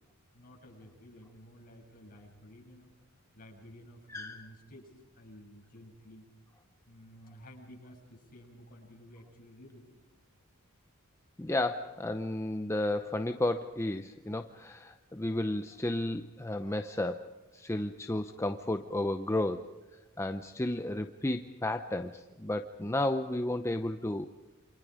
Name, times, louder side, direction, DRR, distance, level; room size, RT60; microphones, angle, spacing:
voice 1, 0.3-2.9 3.3-6.3 6.9-9.9, equal, 40° left, -2 dB, 7.6 m, -53 dB
voice 2, 4.1-4.5 11.4-19.7 20.2-24.3, left 1 dB, 10° left, 7 dB, 0.7 m, -33 dB
28.5 x 26.0 x 5.1 m, 1.2 s
head